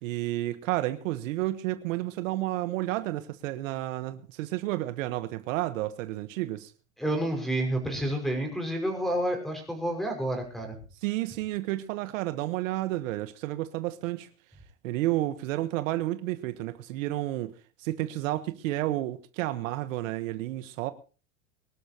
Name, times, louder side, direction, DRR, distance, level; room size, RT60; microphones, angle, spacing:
voice 1, 0.0-6.7 11.0-14.3 14.8-17.5 17.8-20.9, right 16 dB, 70° right, 1.3 m, -31 dB
voice 2, 7.0-10.8, right 1 dB, ahead, 5.5 m, -29 dB
24.0 x 12.0 x 2.9 m
supercardioid pair, 135°, 41 cm